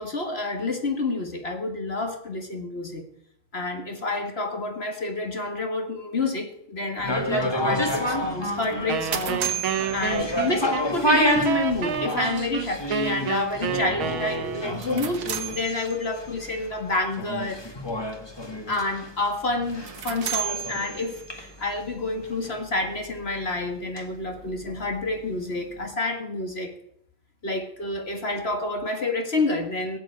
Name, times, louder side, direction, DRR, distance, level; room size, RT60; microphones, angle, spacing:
voice 1, 0.0-3.0 3.5-17.6 18.7-26.7 27.4-30.0, left 2 dB, 35° left, 5 dB, 1.6 m, -29 dB
sound 1, 7.0-25.1 25.4-25.5, equal, 15° left, 1.6 m, -30 dB
sound 2, 8.6-10.9 14.6-16.3 19.7-21.5, right 8 dB, 70° right, 1.9 m, -34 dB
Wind instrument woodwind instrument, 8.9-14.9, right 8 dB, 85° right, 1.9 m, -30 dB
16.5 x 7.9 x 8.3 m, 0.71 s
omnidirectional pair, 2.2 m